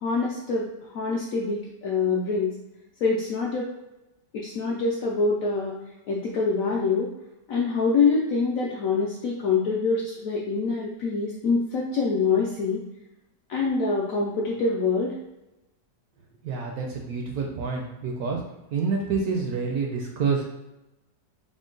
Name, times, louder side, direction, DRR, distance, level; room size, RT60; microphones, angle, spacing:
voice 1, 0.0-0.7 0.9-2.5 3.0-3.7 4.3-5.7 6.1-7.1 7.5-12.8 13.5-15.1, left 4 dB, 75° left, -3 dB, 0.7 m, -25 dB
voice 2, 16.4-18.4 18.7-20.4, right 5 dB, 70° right, 0 dB, 0.9 m, -27 dB
3.7 x 2.1 x 3.7 m, 0.95 s
omnidirectional pair, 1.9 m